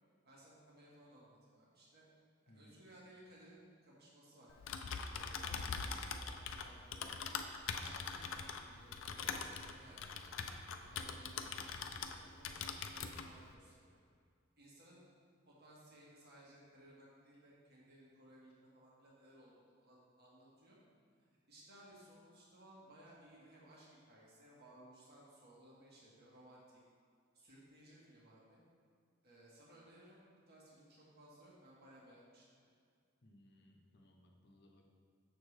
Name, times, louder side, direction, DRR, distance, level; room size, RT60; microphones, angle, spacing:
voice 1, 0.2-2.0 2.4-7.3 7.7-10.5 10.8-14.0 14.6-15.0 15.4-20.8 21.5-26.8 27.3-28.6 29.2-32.7, right 1 dB, 55° right, -5 dB, 1.6 m, -61 dB
voice 2, 2.5-2.8 33.2-34.9, left 1 dB, 55° left, 1 dB, 0.8 m, -64 dB
Typing, 4.5-12.2 12.4-13.3, left 5 dB, 70° left, 0.4 m, -42 dB
6.8 x 6.4 x 3.3 m, 2.2 s
head